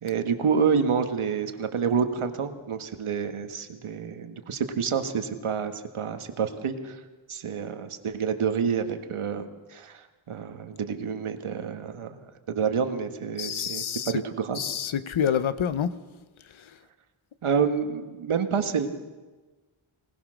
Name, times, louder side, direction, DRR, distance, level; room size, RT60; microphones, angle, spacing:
voice 1, 0.0-7.0 7.3-14.6 17.4-18.9, right 6 dB, 80° right, 7 dB, 1.8 m, -28 dB
voice 2, 13.4-14.1 14.6-15.9, left 8 dB, 70° left, 13 dB, 1.0 m, -27 dB
25.5 x 19.0 x 6.5 m, 1.3 s
wide cardioid pair, 175°, 49 cm